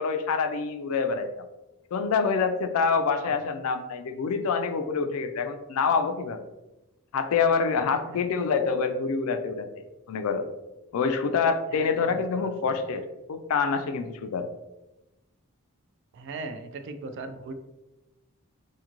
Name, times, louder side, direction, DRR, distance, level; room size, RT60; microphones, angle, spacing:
voice 1, 0.0-1.4 1.9-6.4 7.1-9.7 10.1-10.5 10.9-14.5, left 5 dB, 70° left, 7 dB, 0.3 m, -26 dB
voice 2, 11.7-12.7 16.1-17.5, right 3 dB, 55° right, 8 dB, 0.3 m, -39 dB
2.6 x 2.5 x 2.9 m, 0.99 s
head